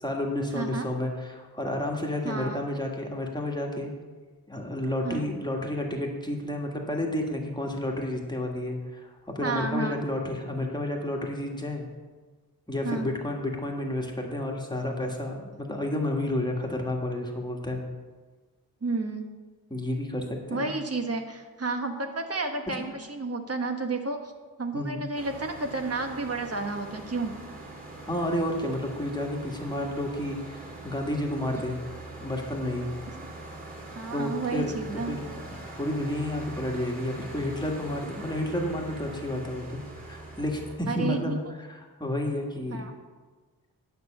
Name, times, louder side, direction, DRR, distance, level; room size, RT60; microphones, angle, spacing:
voice 1, 0.0-3.9 4.5-11.9 12.7-17.8 19.7-20.7 24.7-25.0 28.1-31.8 32.2-32.9 34.1-34.7 35.1-41.4 41.7-42.8, left 1 dB, 10° left, 0 dB, 1.7 m, -31 dB
voice 2, 0.5-0.9 2.2-2.6 5.0-5.3 9.4-10.0 12.8-13.1 18.8-19.3 20.5-24.3 24.6-27.3 33.2-33.6 33.9-35.2 40.9-41.6 42.7-42.9, right 3 dB, 40° right, 5 dB, 1.3 m, -31 dB
sound 1, 25.1-40.8, right 2 dB, 25° right, 3.6 m, -42 dB
9.6 x 6.1 x 7.8 m, 1.3 s
wide cardioid pair, 105°, 37 cm